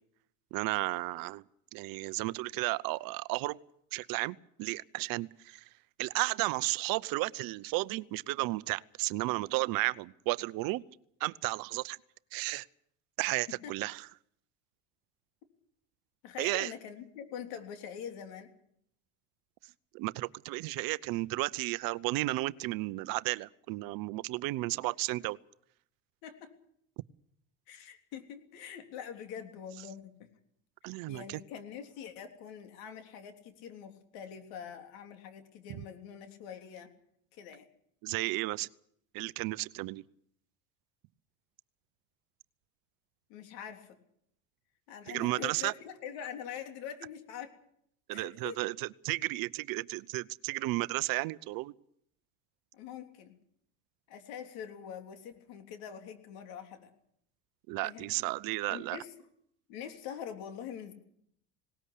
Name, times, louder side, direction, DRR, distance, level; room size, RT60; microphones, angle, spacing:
voice 1, 0.5-1.4 1.7-3.6 3.9-5.7 6.0-10.8 11.2-12.0 12.3-12.7 13.2-14.1 16.4-16.7 19.9-25.4 30.8-31.4 35.7-35.8 38.0-38.7 39.1-40.0 45.1-45.7 48.1-51.7 57.7-59.0, right 21 dB, 60° right, 18 dB, 0.8 m, -33 dB
voice 2, 16.2-18.5 26.2-26.5 27.7-30.3 30.8-36.9 37.3-37.7 43.3-44.0 44.9-47.5 48.1-48.6 52.7-53.4 54.1-56.9 57.8-58.1 58.7-59.1 59.7-60.9, left 8 dB, 65° left, 6 dB, 3.5 m, -44 dB
19.0 x 18.5 x 8.4 m, 0.69 s
supercardioid pair, 95°, 39 cm